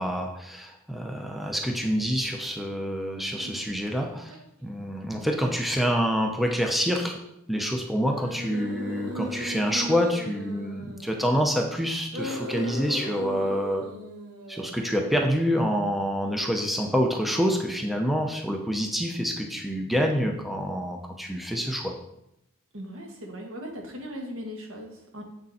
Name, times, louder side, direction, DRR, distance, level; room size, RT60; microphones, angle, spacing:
voice 1, 0.0-4.3 4.6-7.2 7.5-13.8 14.5-21.9, equal, ahead, 2 dB, 0.6 m, -27 dB
sound 1, 3.4-3.7 4.3-4.4 8.1-11.4 12.0-15.0, equal, 90° right, 1.9 m, -37 dB
voice 2, 22.7-25.2, equal, 65° right, 1 dB, 1.7 m, -38 dB
7.6 x 6.5 x 4.2 m, 0.82 s
head